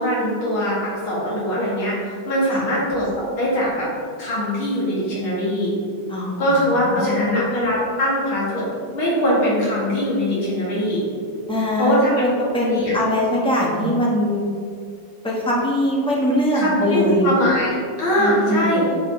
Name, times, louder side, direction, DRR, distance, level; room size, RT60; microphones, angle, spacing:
voice 1, 0.0-2.0 2.3-3.9 4.2-5.7 6.4-8.7 8.9-11.0 11.8-12.3 12.6-12.9 16.5-17.7 18.0-18.8, equal, 85° left, -7 dB, 2.9 m, -21 dB
voice 2, 6.1-7.2 11.5-14.5 15.2-17.3 18.2-18.8, left 1 dB, 5° left, -4 dB, 0.5 m, -22 dB
8.9 x 5.5 x 3.0 m, 2.3 s
omnidirectional pair, 2.2 m